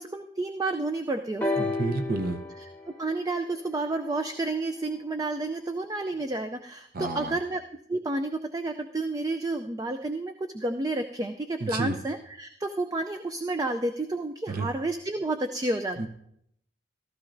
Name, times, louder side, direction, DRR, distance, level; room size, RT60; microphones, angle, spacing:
voice 1, 0.0-1.7 2.6-2.7 3.0-7.6 7.9-16.1, right 2 dB, 20° right, 7 dB, 0.3 m, -30 dB
sound 1, 1.4-5.2 6.2-6.3, left 2 dB, 10° left, 0.8 m, -34 dB
voice 2, 1.6-2.4 6.9-7.4 11.6-12.0 14.5-14.7 16.0-16.1, right 3 dB, 45° right, 7 dB, 0.7 m, -30 dB
15.0 x 13.5 x 2.6 m, 0.73 s
head